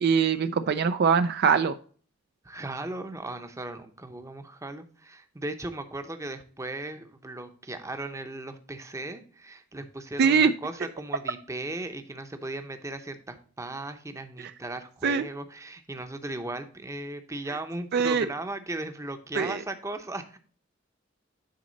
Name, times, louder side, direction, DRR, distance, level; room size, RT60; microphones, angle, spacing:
voice 1, 0.0-1.8 10.2-10.5 15.0-15.2 17.9-18.3 19.3-19.6, right 6 dB, 55° right, 10 dB, 0.4 m, -22 dB
voice 2, 2.4-20.4, right 2 dB, 15° right, 8 dB, 0.7 m, -37 dB
9.4 x 4.1 x 3.9 m, 0.43 s
head